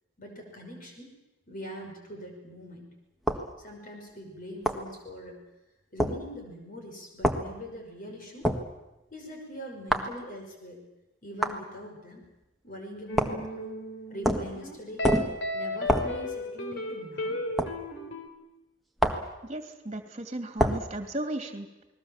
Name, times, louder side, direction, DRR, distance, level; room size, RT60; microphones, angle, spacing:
voice 1, 0.2-1.1 1.5-2.9 3.6-5.4 5.9-8.5 9.1-10.8 11.2-12.3 12.6-13.8 14.1-15.1 15.5-17.4, equal, 40° left, 2 dB, 5.9 m, -42 dB
sound 1, 3.3-3.5 4.7-4.9 6.0-6.2 7.2-7.5 8.4-8.7 9.9-10.1 11.4-11.6 13.2-13.5 14.2-14.5 15.0-15.4 15.9-16.2 17.6-17.8 19.0-19.3 20.6-20.9, equal, ahead, 1.6 m, -26 dB
sound 2, 13.1-18.3, left 1 dB, 60° left, 3.1 m, -35 dB
voice 2, 19.4-21.7, right 1 dB, 30° right, 7 dB, 2.6 m, -35 dB
29.5 x 20.5 x 7.3 m, 0.97 s
head